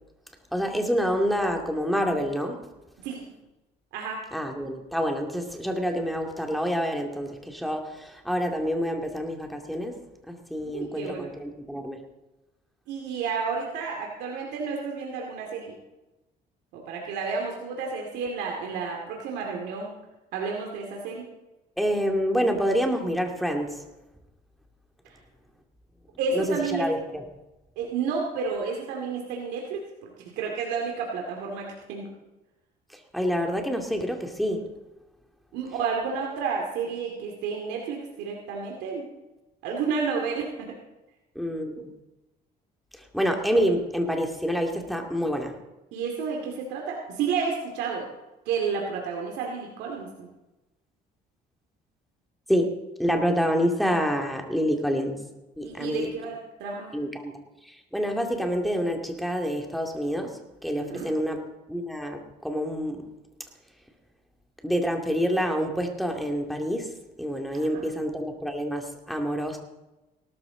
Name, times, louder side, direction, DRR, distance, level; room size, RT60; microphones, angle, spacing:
voice 1, 0.5-2.6 4.3-9.9 10.3-12.0 21.8-23.8 26.3-26.4 26.7-27.2 33.1-34.6 41.4-41.9 43.1-45.5 52.5-52.7 53.0-55.2 55.6-56.1 56.9-57.3 57.7-60.3 60.6-61.4 61.7-63.1 64.6-66.9 67.2-69.6, equal, ahead, 3 dB, 2.3 m, -27 dB
voice 2, 10.7-11.3 12.9-15.8 16.7-19.9 20.3-21.3 26.2-26.9 27.8-30.1 30.4-32.1 35.5-39.0 39.6-40.8 45.9-48.1 48.5-50.3 55.6-57.0 60.8-61.1 67.6-67.8, right 5 dB, 90° right, 0 dB, 2.4 m, -31 dB
18.5 x 13.0 x 3.9 m, 1.0 s
cardioid pair, 110°, 17 cm